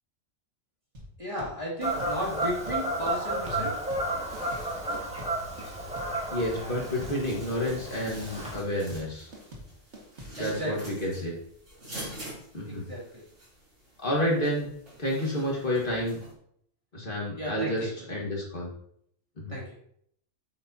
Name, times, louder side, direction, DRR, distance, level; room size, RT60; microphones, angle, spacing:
sound 1, 0.9-10.7, equal, 70° right, 2.2 m, -45 dB
voice 1, 1.2-3.8 10.3-10.9 12.7-13.2 17.4-17.9 19.5-19.6, equal, 25° right, -5 dB, 2.7 m, -34 dB
Fowl / Bird vocalization bird call bird song, 1.8-8.6, right 1 dB, 5° right, 1.9 m, -32 dB
sound 2, 4.2-16.3, right 1 dB, 85° right, 3.7 m, -47 dB
voice 2, 6.3-9.3 10.4-11.3 12.5-12.8 14.0-14.7 15.0-16.2 16.9-18.7 19.4-19.6, equal, 45° left, -3 dB, 1.9 m, -30 dB
8.5 x 8.0 x 2.8 m, 0.67 s
omnidirectional pair, 1.2 m